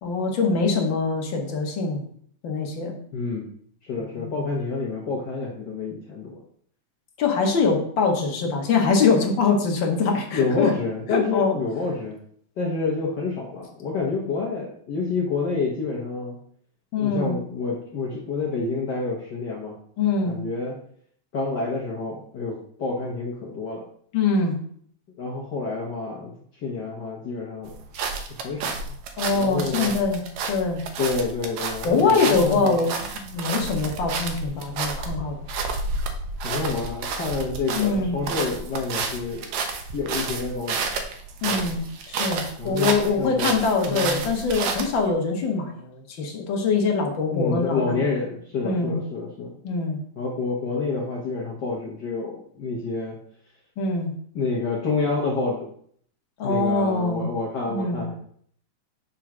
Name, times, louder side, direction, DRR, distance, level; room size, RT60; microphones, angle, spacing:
voice 1, 0.0-2.0 2.4-2.9 4.2-4.4 7.2-10.7 11.1-11.6 16.9-17.4 20.0-20.4 24.1-24.6 29.2-30.2 30.5-30.8 31.8-35.4 37.7-38.2 41.4-47.9 48.6-49.0 49.6-50.0 53.8-54.1 56.4-57.3 57.7-58.0, left 4 dB, 55° left, 2 dB, 1.4 m, -23 dB
voice 2, 3.1-3.5 3.8-6.4 10.3-12.2 12.6-16.4 17.0-19.8 20.2-20.8 21.3-23.8 25.2-26.3 26.6-27.7 28.3-28.7 29.3-29.9 31.0-32.7 36.4-39.5 39.9-40.9 41.4-41.7 42.6-43.5 43.8-44.2 47.3-49.5 50.1-53.2 54.3-55.7 56.4-58.2, left 4 dB, 75° left, -2 dB, 0.9 m, -28 dB
sound 1, 27.6-45.0, right 4 dB, 75° right, 2.0 m, -30 dB
6.0 x 3.9 x 5.9 m, 0.62 s
omnidirectional pair, 3.3 m